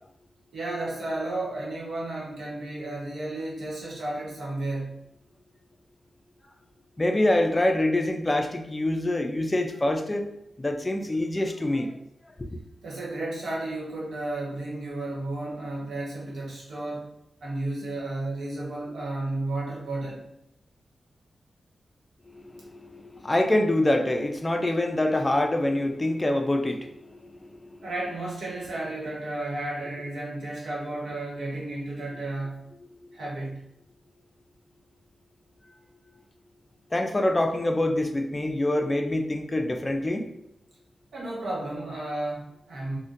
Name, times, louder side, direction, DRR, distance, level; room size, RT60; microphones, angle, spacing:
voice 1, 0.5-5.1 12.8-17.1 17.4-20.2 27.8-32.7 33.1-33.7 41.1-43.0, right 2 dB, 85° right, -4 dB, 1.0 m, -33 dB
voice 2, 7.0-10.3 10.6-12.0 12.4-12.5 22.3-27.9 32.9-33.0 36.9-40.3, left 1 dB, 20° left, 5 dB, 0.3 m, -25 dB
3.8 x 2.1 x 2.5 m, 0.80 s
wide cardioid pair, 90°, 0 cm